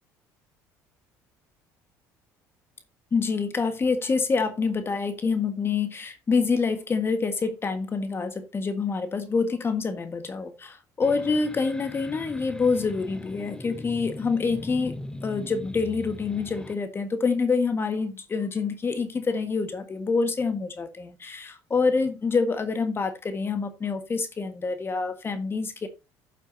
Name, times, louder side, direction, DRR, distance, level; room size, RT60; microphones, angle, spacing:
voice 1, 3.1-15.0 15.2-25.9, left 4 dB, 30° left, 1.5 m, -26 dB
sound 1, 11.0-16.8, left 2 dB, 10° left, 0.7 m, -40 dB
12.0 x 7.6 x 2.7 m
supercardioid pair, 85°, 7 cm